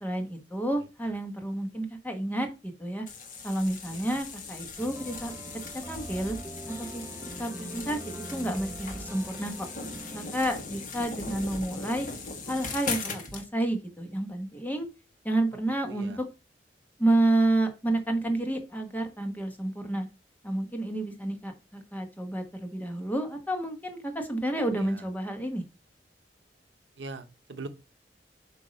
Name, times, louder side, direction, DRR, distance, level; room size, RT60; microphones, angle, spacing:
voice 1, 0.0-3.0 3.4-5.3 5.9-6.4 6.7-7.0 7.4-9.7 10.1-12.1 12.5-14.9 15.2-16.2 17.0-20.1 20.4-25.6, right 1 dB, 10° left, 1.2 m, -30 dB
sound 1, 3.1-13.4, left 4 dB, 50° left, 1.3 m, -39 dB
voice 2, 3.9-4.2 15.5-15.6 15.8-16.2 24.7-25.1 27.0-27.7, right 3 dB, 80° right, 0.8 m, -42 dB
sound 2, 4.8-10.5, right 1 dB, 15° right, 0.6 m, -42 dB
8.0 x 2.8 x 5.2 m
head